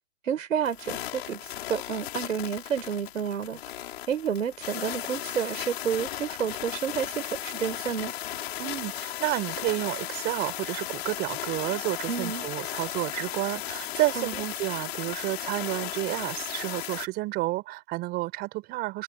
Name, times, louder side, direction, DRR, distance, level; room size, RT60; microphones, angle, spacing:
voice 1, 0.3-1.4 1.7-3.6 4.1-8.1 12.1-12.5 14.2-14.3, right 8 dB, 70° right, 5.3 m, -30 dB
sound 1, 0.6-17.1, left 13 dB, 45° left, 4.9 m, -36 dB
voice 2, 8.6-19.0, right 19 dB, 25° right, 5.5 m, -30 dB
hypercardioid pair, 155°, 41 cm